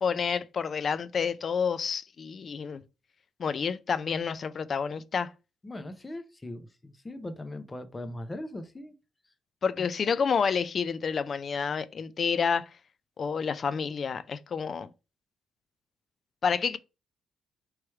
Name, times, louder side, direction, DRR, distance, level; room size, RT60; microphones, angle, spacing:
voice 1, 0.0-2.8 3.4-5.3 9.6-12.7 13.2-14.9 16.4-16.8, left 6 dB, 50° left, 0.4 m, -29 dB
voice 2, 5.6-8.9, left 1 dB, 20° left, 0.7 m, -39 dB
3.2 x 3.0 x 4.6 m
cardioid pair, 90°, 0 cm